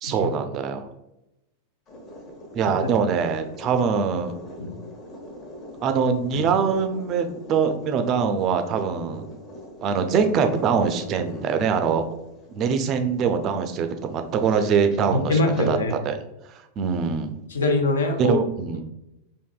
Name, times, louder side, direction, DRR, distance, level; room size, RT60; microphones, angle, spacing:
voice 1, 0.0-0.9 2.5-4.3 5.8-9.3 9.8-12.0 12.5-15.4 15.7-16.1 16.4-17.4 18.2-18.8, right 6 dB, 35° right, 7 dB, 0.4 m, -23 dB
sound 1, 1.9-15.7, left 1 dB, 30° left, 0.8 m, -42 dB
voice 2, 15.3-15.9 17.5-18.4, left 2 dB, 65° left, 5 dB, 0.4 m, -23 dB
3.5 x 2.6 x 2.3 m, 0.90 s
figure-of-eight pair, 90°, 0 cm